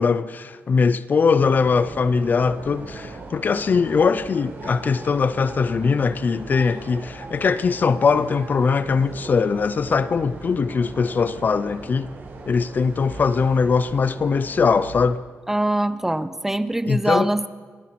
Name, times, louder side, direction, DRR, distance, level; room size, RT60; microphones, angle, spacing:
voice 1, 0.0-12.1 12.5-15.2 16.9-17.3, left 5 dB, 40° left, 0.5 m, -21 dB
sound 1, 1.4-15.0, right 3 dB, 55° right, 4.9 m, -39 dB
voice 2, 15.5-17.5, right 1 dB, 10° right, 0.7 m, -23 dB
27.5 x 18.0 x 5.9 m
wide cardioid pair, 175°, 5 cm